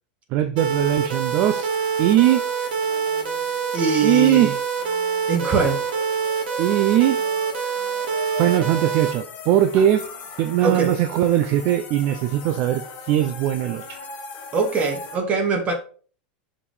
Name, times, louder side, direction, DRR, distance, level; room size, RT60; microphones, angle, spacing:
voice 1, 0.3-1.7 2.0-2.4 4.0-4.6 6.6-7.2 8.4-10.1 10.4-14.0, right 12 dB, 45° right, 0.7 m, -20 dB
sound 1, 0.6-9.1, right 6 dB, 90° right, 2.4 m, -25 dB
sound 2, 0.8-15.2, left 5 dB, 30° left, 3.0 m, -39 dB
voice 2, 3.7-4.5 5.3-5.8 10.6-10.9 14.5-15.7, right 4 dB, 25° right, 2.1 m, -22 dB
7.0 x 5.4 x 5.0 m
supercardioid pair, 145°, 5 cm